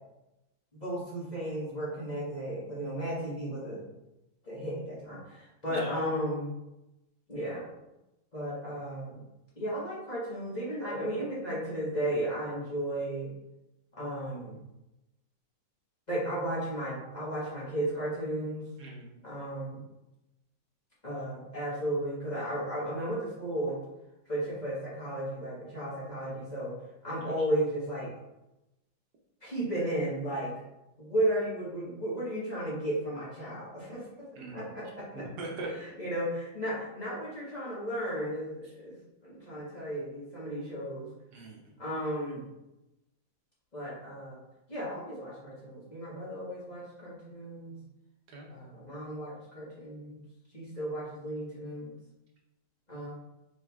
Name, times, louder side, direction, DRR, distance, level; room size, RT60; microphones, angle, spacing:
voice 1, 0.7-3.8 4.4-6.5 7.3-7.6 8.3-9.2 9.6-13.3 13.9-14.6 16.1-18.6 19.2-19.8 21.0-23.8 24.3-26.7 27.0-28.1 29.4-30.5 31.0-34.0 34.5-35.2 35.8-38.9 39.2-41.1 41.8-42.5 43.7-44.4 44.7-47.8 48.5-50.2 50.5-51.9 52.9-53.1, right 1 dB, 25° left, -8 dB, 1.4 m, -34 dB
voice 2, 18.8-19.1 34.4-34.7 35.1-35.7 41.3-41.7 48.3-48.5, right 2 dB, 60° right, -1 dB, 1.4 m, -41 dB
5.0 x 4.4 x 2.4 m, 0.94 s
omnidirectional pair, 2.0 m